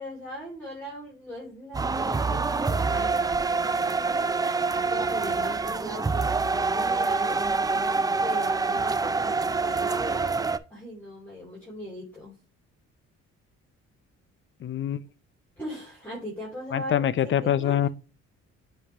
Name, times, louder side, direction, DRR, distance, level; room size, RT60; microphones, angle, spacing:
voice 1, 0.0-3.4 4.9-7.5 8.2-10.3 10.7-12.4 15.6-17.8, equal, 5° left, 3.2 m, -39 dB
sound 1, 1.7-10.6, right 4 dB, 15° right, 0.3 m, -26 dB
voice 2, 14.6-15.0 16.7-17.9, left 10 dB, 40° left, 0.5 m, -24 dB
9.6 x 3.4 x 3.0 m
cardioid pair, 90°, 30 cm